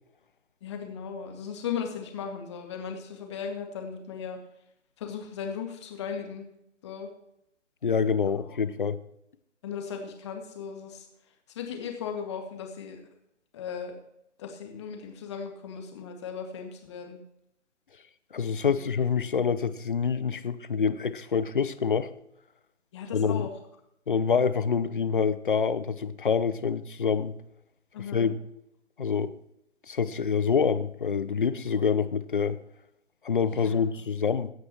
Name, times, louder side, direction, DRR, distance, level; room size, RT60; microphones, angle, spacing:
voice 1, 0.6-4.4 5.0-6.5 6.8-7.1 8.5-8.6 9.6-11.1 11.6-13.0 13.5-14.0 14.4-17.2 18.7-18.8 22.9-23.5 27.9-28.3 33.5-34.1, left 7 dB, 20° left, 4 dB, 2.0 m, -37 dB
voice 2, 7.8-9.0 18.3-22.1 23.1-23.5 24.1-27.3 28.1-28.4 29.0-29.3 29.9-32.6 33.2-34.5, left 6 dB, 45° left, 13 dB, 0.9 m, -26 dB
25.0 x 9.6 x 3.0 m, 0.77 s
figure-of-eight pair, 145°, 38 cm